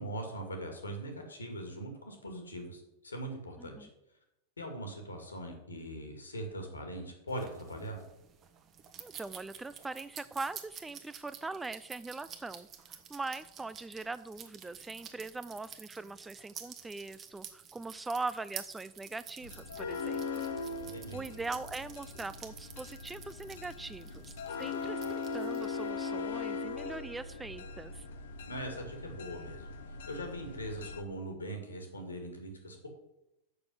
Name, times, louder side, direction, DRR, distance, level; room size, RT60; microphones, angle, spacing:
voice 1, 0.0-3.9 4.6-8.0 20.8-21.2 28.4-29.7 30.1-32.9, right 1 dB, 75° left, 4 dB, 2.2 m, -41 dB
voice 2, 3.6-3.9 9.0-20.3 21.1-28.0, right 3 dB, 10° right, 15 dB, 0.4 m, -41 dB
sound 1, 7.3-25.9, right 8 dB, 30° right, 1.2 m, -50 dB
sound 2, 19.4-31.0, left 4 dB, 60° left, 0.9 m, -40 dB
6.9 x 6.6 x 7.7 m, 0.89 s
figure-of-eight pair, 90°, 0 cm